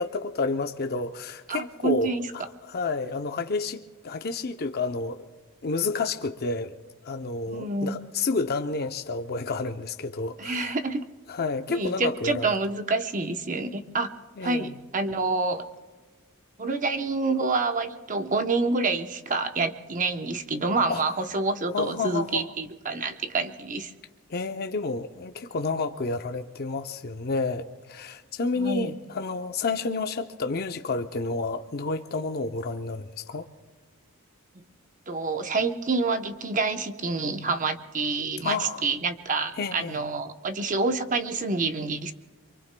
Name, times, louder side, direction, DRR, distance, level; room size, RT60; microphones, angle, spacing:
voice 1, 0.0-5.2 5.6-6.7 7.0-10.8 11.3-12.5 14.4-14.7 20.9-21.0 21.7-22.5 24.3-33.5 38.4-38.9 39.6-40.0, left 3 dB, 45° left, 7 dB, 0.6 m, -30 dB
voice 2, 1.5-2.3 7.5-8.0 10.4-11.0 11.7-14.1 14.4-15.7 16.6-23.9 28.6-29.0 35.1-42.1, right 3 dB, 35° right, 7 dB, 0.8 m, -27 dB
27.0 x 24.0 x 2.2 m, 1.3 s
head